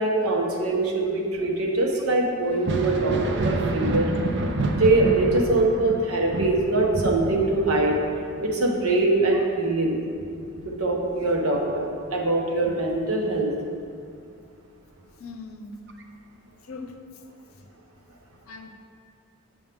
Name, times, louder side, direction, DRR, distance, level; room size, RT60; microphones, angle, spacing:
voice 1, 0.0-4.1 4.7-8.0 8.4-10.0 10.7-13.5, right 2 dB, 80° right, 0 dB, 1.1 m, -23 dB
Thunder, 2.5-11.8 12.2-13.4 15.0-15.1 15.9-16.0, right 2 dB, 55° right, 0.5 m, -29 dB
voice 2, 15.2-15.9 16.7-17.0 17.5-17.7 18.5-18.7, left 3 dB, 75° left, 5 dB, 0.7 m, -40 dB
7.2 x 7.2 x 3.5 m, 2.3 s
head